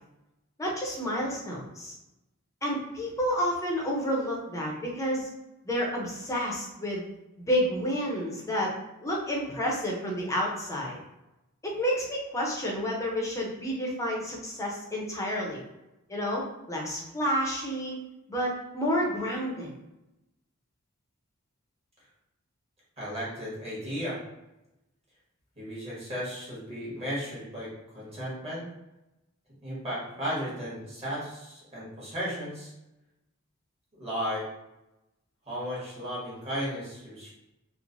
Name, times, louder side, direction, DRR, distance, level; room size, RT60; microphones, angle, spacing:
voice 1, 0.6-1.9 2.6-5.3 5.6-7.0 7.4-8.7 9.0-11.0 11.6-15.6 16.1-18.0 18.3-19.7, equal, 15° left, -3 dB, 0.6 m, -30 dB
voice 2, 23.0-24.2 25.6-28.7 29.6-32.7 33.9-34.5 35.5-37.3, equal, 30° right, -7 dB, 1.2 m, -35 dB
3.0 x 2.0 x 2.5 m, 0.94 s
head